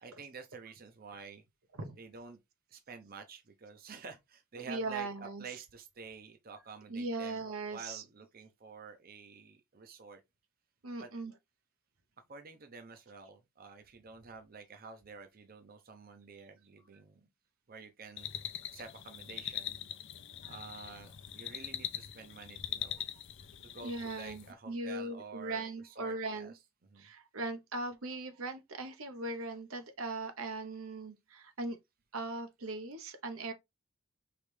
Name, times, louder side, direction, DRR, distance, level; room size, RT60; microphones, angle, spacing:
voice 1, 0.0-1.4 2.0-2.4 2.7-10.2 11.0-11.1 12.3-17.3 17.7-18.3 18.7-19.8 20.5-23.1 23.6-27.1, right 5 dB, 45° right, 0.7 m, -50 dB
voice 2, 4.7-5.4 6.9-8.0 10.8-11.3 20.4-20.5 23.8-26.5 27.0-31.8 32.1-33.5, right 2 dB, 75° right, 0.9 m, -39 dB
sound 1, 18.2-24.5, left 11 dB, 60° left, 0.5 m, -42 dB
4.9 x 3.2 x 3.2 m
head